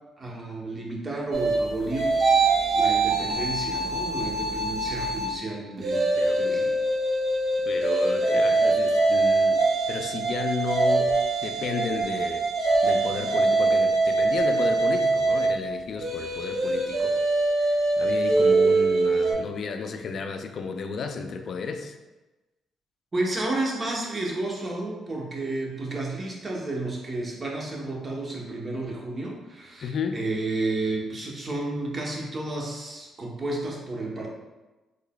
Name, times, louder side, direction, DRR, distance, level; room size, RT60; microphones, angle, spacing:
voice 1, 0.2-2.1 2.7-6.0 6.4-6.7 23.1-34.3, right 2 dB, 30° right, -1 dB, 0.8 m, -31 dB
sound 1, 1.3-5.4 5.8-19.3, right 3 dB, 60° right, 0.6 m, -23 dB
voice 2, 6.2-6.6 7.6-11.2 11.4-12.4 12.8-17.1 17.6-22.0 29.8-30.2, left 5 dB, 55° left, 7 dB, 0.3 m, -33 dB
3.9 x 3.2 x 2.2 m, 1.1 s
cardioid pair, 90°, 0 cm